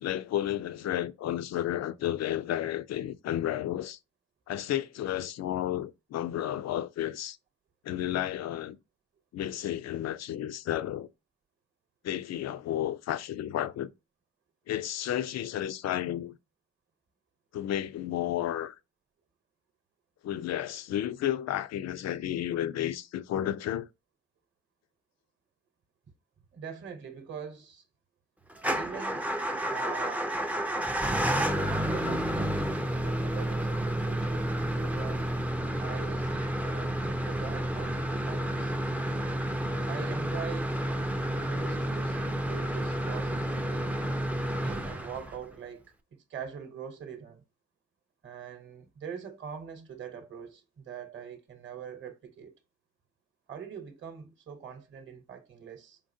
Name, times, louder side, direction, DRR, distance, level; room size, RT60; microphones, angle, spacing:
voice 1, 0.0-4.0 4.5-7.4 7.8-8.8 9.3-11.1 12.0-13.9 14.7-16.4 17.5-18.8 20.2-23.9, left 12 dB, 60° left, 0.5 m, -32 dB
voice 2, 26.5-27.8 28.7-29.3 29.7-30.3 31.2-35.3 35.8-38.7 39.6-40.8 41.3-44.1 44.6-47.4 48.2-52.5 53.5-56.0, right 7 dB, 40° right, 1.0 m, -43 dB
Motor vehicle (road) / Engine starting / Idling, 28.6-45.5, right 1 dB, 5° right, 0.4 m, -30 dB
4.7 x 3.8 x 2.6 m
cardioid pair, 90°, 30 cm